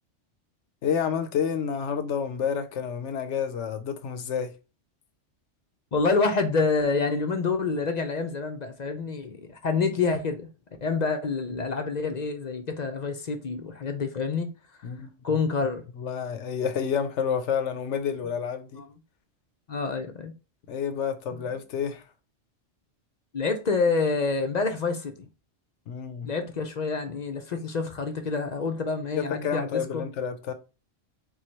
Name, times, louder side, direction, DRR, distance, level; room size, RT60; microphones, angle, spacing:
voice 1, 0.8-4.5 14.8-15.1 16.0-18.8 20.7-22.0 25.9-26.3 29.1-30.5, left 7 dB, 75° left, 1.0 m, -29 dB
voice 2, 5.9-10.5 10.8-14.5 15.2-15.8 18.7-18.8 19.7-20.3 23.3-25.3 26.2-30.0, left 4 dB, 45° left, 0.6 m, -27 dB
4.7 x 2.3 x 4.3 m
omnidirectional pair, 1.3 m